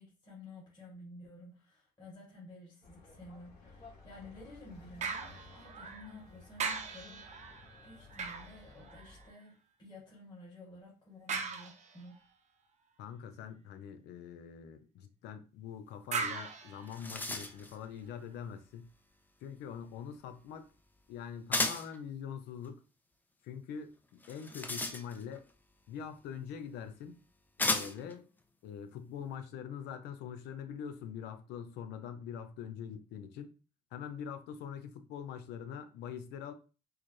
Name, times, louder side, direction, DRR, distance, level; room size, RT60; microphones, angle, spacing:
voice 1, 0.0-7.2 7.8-12.2 17.0-17.1, left 2 dB, 25° left, 1.6 m, -52 dB
sound 1, 2.8-9.3, left 3 dB, 65° left, 1.9 m, -56 dB
sound 2, 5.0-6.2 6.6-9.4 11.3-12.2 16.1-17.6 18.1-18.2, right 5 dB, 45° right, 0.7 m, -40 dB
voice 2, 13.0-18.9 19.4-20.7 21.1-22.8 23.4-25.4 25.9-27.2 27.6-28.3 28.6-33.5 33.9-36.5, left 8 dB, 85° left, 0.6 m, -44 dB
sound 3, 16.4-16.5 16.7-17.7 21.5-22.0 24.2-25.4 26.5-26.6 27.6-28.1, left 2 dB, 10° left, 0.4 m, -34 dB
4.7 x 2.0 x 3.1 m
cardioid pair, 110°, 17 cm